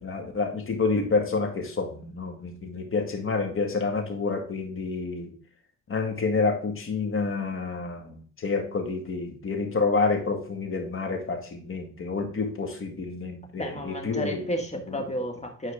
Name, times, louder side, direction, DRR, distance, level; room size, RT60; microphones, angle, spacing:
voice 1, 0.0-5.3 5.9-14.4 14.9-15.1, left 4 dB, 45° left, 2.2 m, -28 dB
voice 2, 13.6-15.7, equal, 20° left, 1.9 m, -32 dB
10.0 x 4.6 x 3.6 m
cardioid pair, 90°, 30 cm